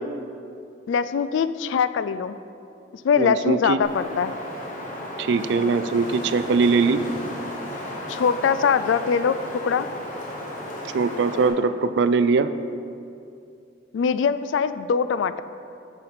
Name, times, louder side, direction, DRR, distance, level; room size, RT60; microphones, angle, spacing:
voice 1, 0.9-2.4 3.0-4.3 8.1-9.4 9.6-9.9 13.9-15.4, left 6 dB, 80° left, 14 dB, 0.3 m, -22 dB
voice 2, 3.2-3.8 5.2-7.0 10.9-12.5, right 4 dB, 65° right, 12 dB, 0.4 m, -21 dB
Wind, 3.8-11.5, left 1 dB, 45° left, 1.3 m, -34 dB
8.8 x 5.8 x 4.2 m, 2.5 s
head